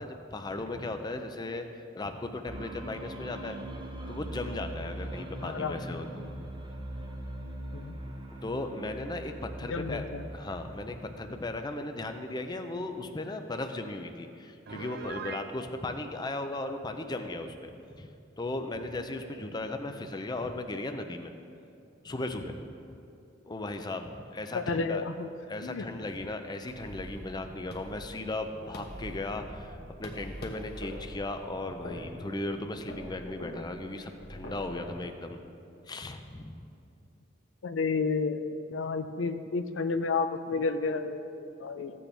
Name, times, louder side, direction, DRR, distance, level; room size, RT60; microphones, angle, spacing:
voice 1, 0.0-1.7 2.0-3.6 4.1-6.5 8.4-9.3 9.6-10.0 10.3-18.1 18.4-21.3 22.0-22.6 23.4-25.0 25.5-35.4 35.9-36.5, left 2 dB, 20° left, 6 dB, 0.5 m, -36 dB
sound 1, 2.5-12.1, right 1 dB, 25° right, 0.8 m, -41 dB
voice 2, 5.4-6.1 7.7-8.0 9.6-10.2 24.5-25.3 25.6-25.9 37.6-38.4 38.7-41.9, left 4 dB, 70° left, 9 dB, 0.5 m, -31 dB
Piano, 14.7-15.5, right 5 dB, 55° right, 0.5 m, -40 dB
sound 2, 26.7-34.9, equal, 55° left, 1.2 m, -44 dB
14.5 x 8.5 x 3.4 m, 2.6 s
head